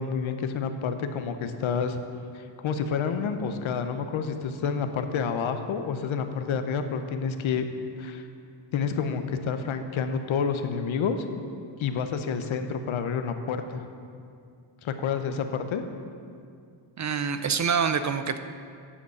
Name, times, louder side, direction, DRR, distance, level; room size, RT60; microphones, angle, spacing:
voice 1, 0.0-2.0 2.3-7.7 8.0-8.2 8.7-11.2 11.8-13.8 14.8-15.8, left 6 dB, 70° left, 8 dB, 0.9 m, -29 dB
voice 2, 17.0-18.4, right 6 dB, 35° right, 10 dB, 0.5 m, -26 dB
9.8 x 5.2 x 7.0 m, 2.3 s
cardioid pair, 70°, 50 cm